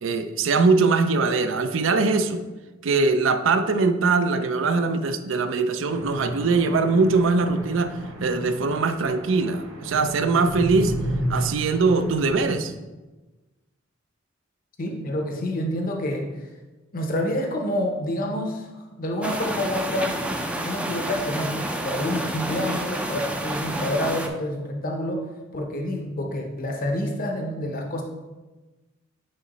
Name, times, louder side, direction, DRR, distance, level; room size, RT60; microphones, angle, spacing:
voice 1, 0.0-2.4 2.8-11.0 11.3-12.7, right 4 dB, 70° right, 10 dB, 0.5 m, -22 dB
sound 1, 5.9-12.5, right 1 dB, 85° right, 0.9 m, -32 dB
voice 2, 14.8-16.5 16.9-20.1 20.6-25.3 25.5-28.0, left 1 dB, 45° left, 2 dB, 0.7 m, -28 dB
sound 2, 19.2-24.3, right 1 dB, 5° right, 0.4 m, -29 dB
8.7 x 3.0 x 4.1 m, 1.2 s
head